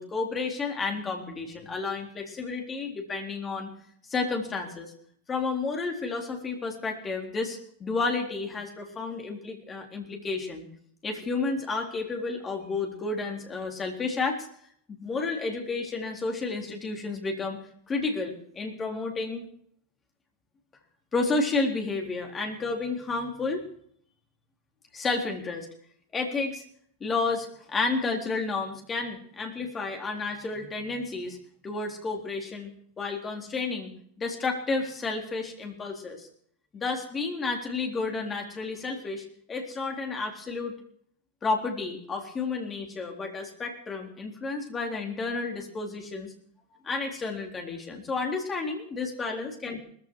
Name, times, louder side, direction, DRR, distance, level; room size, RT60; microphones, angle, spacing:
voice 1, 0.0-3.7 4.1-4.9 5.3-10.7 11.0-14.5 14.9-17.6 17.9-19.4 21.1-23.6 24.9-25.7 26.1-26.6 27.0-31.4 31.6-33.9 34.2-36.3 36.7-40.7 41.4-46.3 46.8-49.8, left 3 dB, 20° left, 2 dB, 3.9 m, -31 dB
19.5 x 15.0 x 4.8 m, 0.63 s
figure-of-eight pair, 90°, 0 cm